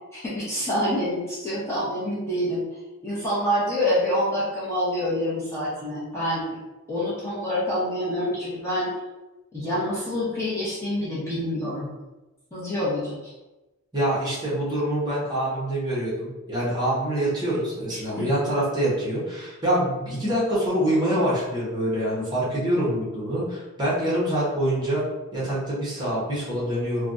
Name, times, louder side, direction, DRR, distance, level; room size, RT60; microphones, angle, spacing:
voice 1, 0.1-2.6 3.0-6.6 6.9-8.9 9.5-11.9 12.5-13.3 17.9-18.2, left 1 dB, 15° left, -10 dB, 0.8 m, -27 dB
voice 2, 13.9-25.0 25.3-27.1, right 1 dB, 20° right, -7 dB, 1.1 m, -25 dB
3.3 x 2.3 x 2.6 m, 1.1 s
head